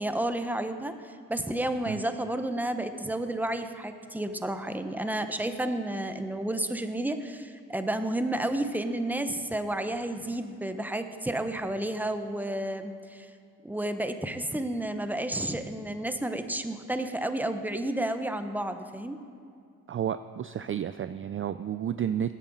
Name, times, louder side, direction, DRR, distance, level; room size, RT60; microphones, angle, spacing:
voice 1, 0.0-13.3 13.6-19.2, right 1 dB, 5° right, 8 dB, 0.8 m, -31 dB
voice 2, 19.9-22.4, right 9 dB, 35° right, 12 dB, 0.4 m, -31 dB
16.5 x 8.9 x 4.1 m, 2.3 s
cardioid pair, 65°, 36 cm